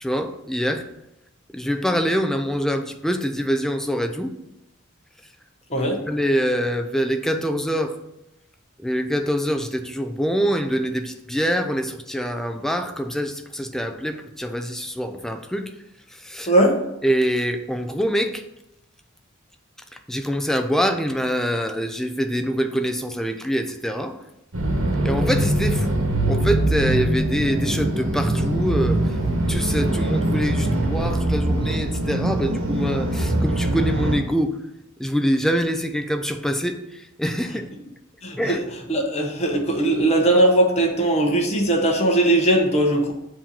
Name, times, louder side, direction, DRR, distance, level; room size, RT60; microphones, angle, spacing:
voice 1, 0.0-0.8 1.5-4.3 5.8-7.9 8.8-15.7 16.2-16.5 17.0-18.4 20.1-24.2 25.0-26.0 26.3-29.0 29.5-34.6 35.0-37.7 38.4-38.6, equal, ahead, 6 dB, 0.4 m, -25 dB
voice 2, 16.5-16.8 38.2-43.1, right 1 dB, 30° left, 0 dB, 1.0 m, -19 dB
sound 1, 24.5-34.2, right 1 dB, 70° right, 1.1 m, -22 dB
7.6 x 2.9 x 5.4 m, 0.88 s
head